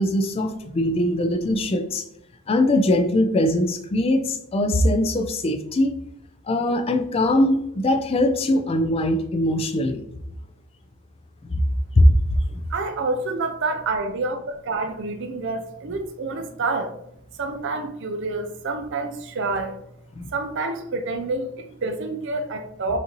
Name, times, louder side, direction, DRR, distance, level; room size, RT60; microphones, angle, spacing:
voice 1, 0.0-2.0 2.5-5.9 6.5-10.1 11.4-11.5 12.0-12.1 12.5-12.6 20.2-20.3, left 1 dB, 25° left, 5 dB, 0.3 m, -21 dB
voice 2, 12.7-17.0 17.4-19.8 20.3-23.0, right 3 dB, 55° right, 6 dB, 0.5 m, -28 dB
6.1 x 2.7 x 2.9 m, 0.74 s
head